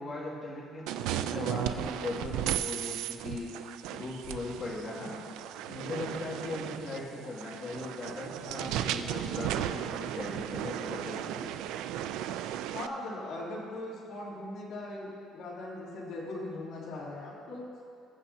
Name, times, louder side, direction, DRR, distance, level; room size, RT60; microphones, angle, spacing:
voice 1, 0.0-3.6 3.9-5.2 5.7-11.5, left 2 dB, 35° left, -7 dB, 2.3 m, -39 dB
sound 1, 0.9-12.9, right 11 dB, 85° right, 0.4 m, -35 dB
voice 2, 12.7-17.7, left 2 dB, 60° left, -5 dB, 2.9 m, -39 dB
21.0 x 7.1 x 2.8 m, 2.5 s
cardioid pair, 155°, 0 cm